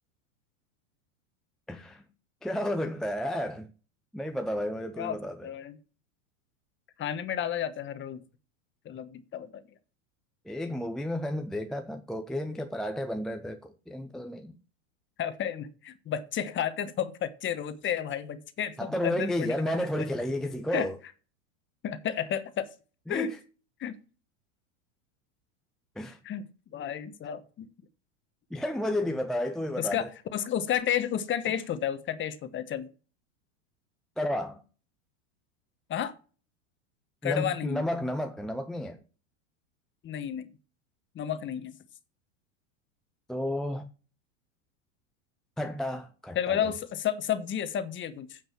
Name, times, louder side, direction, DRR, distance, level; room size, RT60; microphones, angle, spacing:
voice 1, 1.7-2.0 2.4-3.7 4.1-5.5 10.5-14.6 18.8-21.0 23.1-23.4 26.0-26.2 28.5-30.1 34.2-34.6 37.2-39.0 43.3-43.9 45.6-46.7, left 1 dB, ahead, 0.5 m, -32 dB
voice 2, 5.4-5.8 7.0-8.2 8.8-9.6 15.2-19.6 20.0-20.1 20.7-20.9 21.8-22.7 23.1-23.3 23.8-24.0 26.2-26.4 26.7-27.7 29.8-32.9 35.9-36.1 37.2-37.8 40.0-40.5 41.1-41.8 46.3-48.4, left 9 dB, 30° left, 1.2 m, -31 dB
9.2 x 5.3 x 7.2 m
supercardioid pair, 125°, 40 cm